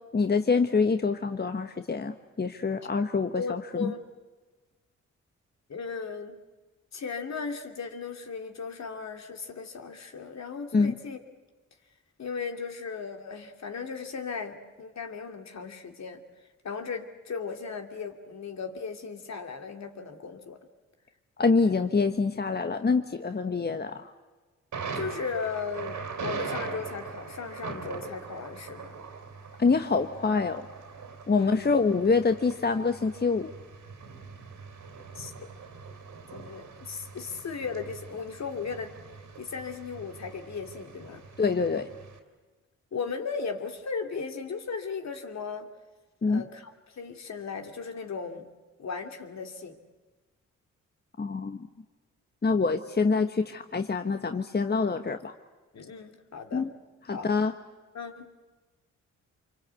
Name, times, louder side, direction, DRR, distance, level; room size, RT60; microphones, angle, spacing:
voice 1, 0.1-3.9 10.7-10.9 21.4-24.1 29.6-30.7 31.3-33.5 41.4-41.9 46.2-46.4 51.2-51.6 52.4-55.3 56.5-56.7 57.1-57.5, left 4 dB, 35° left, 7 dB, 1.3 m, -26 dB
voice 2, 3.4-4.0 5.7-6.4 6.9-11.2 12.2-16.2 16.6-20.6 24.9-29.0 31.3-31.7 35.1-35.5 36.3-38.9 39.4-41.2 42.9-45.7 46.3-48.5 48.8-49.8 55.7-56.7 57.1-57.3 57.9-58.3, left 5 dB, 65° left, 4 dB, 2.7 m, -36 dB
Thunder, 24.7-42.2, right 5 dB, 75° right, 3.3 m, -42 dB
25.5 x 24.0 x 8.3 m, 1.3 s
supercardioid pair, 55°, 30 cm